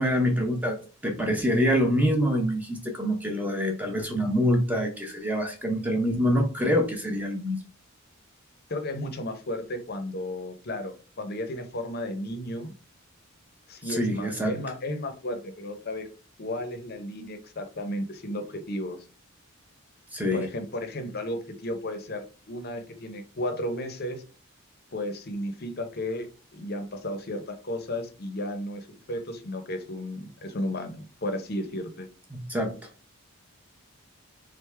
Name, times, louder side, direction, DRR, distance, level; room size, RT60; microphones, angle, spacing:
voice 1, 0.0-7.6 13.8-14.5 20.1-20.4 32.3-32.8, equal, 5° right, 2 dB, 0.7 m, -25 dB
voice 2, 8.7-12.7 13.7-16.1 16.4-19.0 20.3-24.2 24.9-32.1, left 1 dB, 45° left, 7 dB, 0.7 m, -34 dB
3.6 x 3.5 x 3.3 m, 0.35 s
head